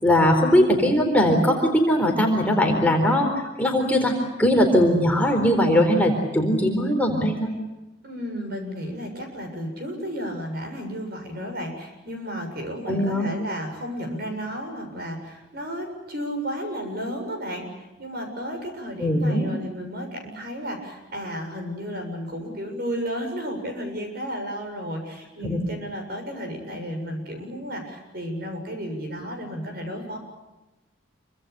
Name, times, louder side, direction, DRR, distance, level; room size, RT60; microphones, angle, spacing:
voice 1, 0.0-3.3 3.6-7.5 12.9-13.3 19.0-19.4 25.4-25.7, equal, 10° left, 2 dB, 4.0 m, -20 dB
voice 2, 8.0-30.2, equal, 50° right, 4 dB, 7.2 m, -33 dB
27.5 x 25.0 x 6.9 m, 1.1 s
head